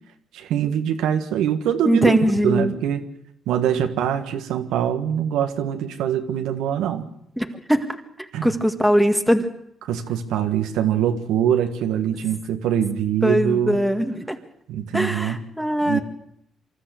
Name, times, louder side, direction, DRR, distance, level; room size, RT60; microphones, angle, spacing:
voice 1, 0.3-3.0 3.5-7.0 8.3-8.5 9.9-13.8 14.7-15.4 15.9-16.0, right 9 dB, 90° right, 7 dB, 1.6 m, -23 dB
voice 2, 1.9-2.7 7.4-8.0 8.4-9.5 13.2-14.4 14.9-16.0, equal, ahead, 7 dB, 1.9 m, -21 dB
25.0 x 13.5 x 8.3 m, 0.73 s
cardioid pair, 90°, 0 cm